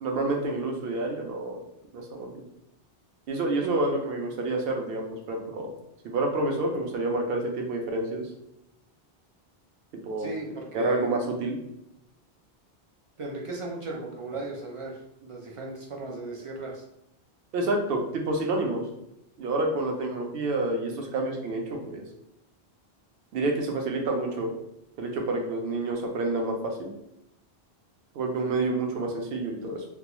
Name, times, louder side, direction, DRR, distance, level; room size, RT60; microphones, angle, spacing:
voice 1, 0.0-1.6 1.9-2.4 3.3-5.7 6.0-8.3 10.0-10.3 10.7-11.6 17.5-18.8 19.4-22.0 23.3-24.5 25.0-26.9 28.1-29.8, right 2 dB, 70° right, 2 dB, 0.8 m, -28 dB
voice 2, 10.2-11.1 13.2-16.8, right 2 dB, 55° right, -1 dB, 0.3 m, -36 dB
2.3 x 2.2 x 2.9 m, 0.84 s
omnidirectional pair, 1.0 m